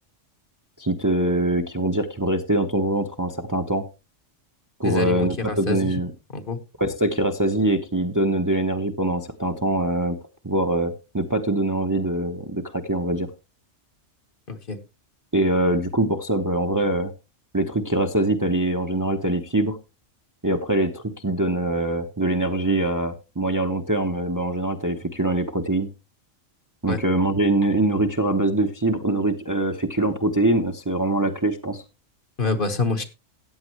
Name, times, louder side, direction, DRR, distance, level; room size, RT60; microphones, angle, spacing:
voice 1, 0.8-3.8 4.8-6.1 6.8-10.2 10.4-13.3 15.3-17.1 17.5-19.8 20.4-25.9 26.8-31.8, right 1 dB, 20° right, 5 dB, 0.7 m, -23 dB
voice 2, 4.8-5.9 6.3-6.6 14.5-14.8 26.9-27.0 32.4-33.0, left 3 dB, 45° left, 7 dB, 1.3 m, -26 dB
14.5 x 8.8 x 3.1 m, 0.27 s
omnidirectional pair, 1.3 m